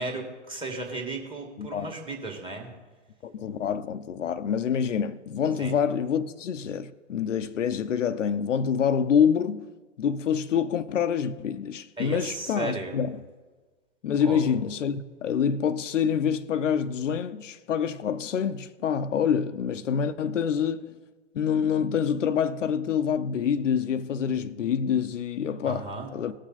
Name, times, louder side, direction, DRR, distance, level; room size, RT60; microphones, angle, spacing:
voice 1, 0.0-2.7 5.6-5.7 12.0-13.0 14.2-14.4 25.6-26.1, right 3 dB, 15° right, 2.0 m, -35 dB
voice 2, 1.6-2.0 3.2-9.6 10.0-13.2 14.0-20.9 21.3-26.3, left 7 dB, 80° left, 0.7 m, -26 dB
18.5 x 6.3 x 4.1 m
hypercardioid pair, 125°, 37 cm